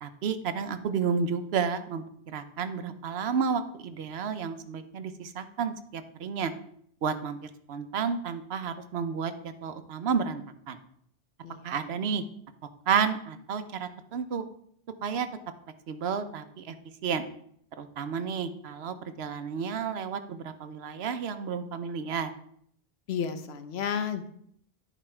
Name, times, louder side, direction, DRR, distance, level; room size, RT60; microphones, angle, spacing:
voice 1, 0.0-2.0 2.3-6.5 7.0-9.3 9.6-10.8 11.6-12.2 12.9-14.4 15.0-15.3 15.9-16.7 17.0-17.3 17.8-22.3, right 6 dB, 85° right, 10 dB, 1.0 m, -31 dB
voice 2, 23.1-24.3, left 7 dB, 85° left, 10 dB, 1.0 m, -32 dB
10.5 x 5.0 x 4.4 m, 0.67 s
omnidirectional pair, 1.0 m